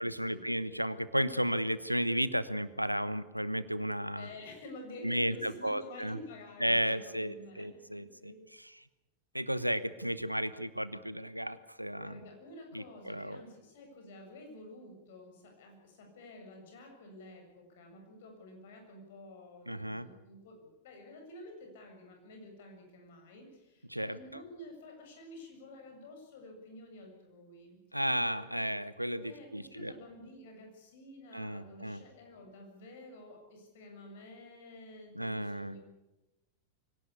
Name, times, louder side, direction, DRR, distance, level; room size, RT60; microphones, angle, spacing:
voice 1, 0.0-4.3 5.0-6.2 6.6-8.3 8.6-8.8 9.3-12.2 12.7-13.4 19.7-20.1 23.9-24.4 27.9-29.9 31.3-32.0 35.1-35.7, equal, 90° right, 16 dB, 1.0 m, -33 dB
voice 2, 4.1-8.4 12.0-27.8 29.2-35.8, left 1 dB, 55° left, 3 dB, 7.2 m, -50 dB
24.5 x 17.5 x 8.4 m, 1.0 s
figure-of-eight pair, 90°, 0 cm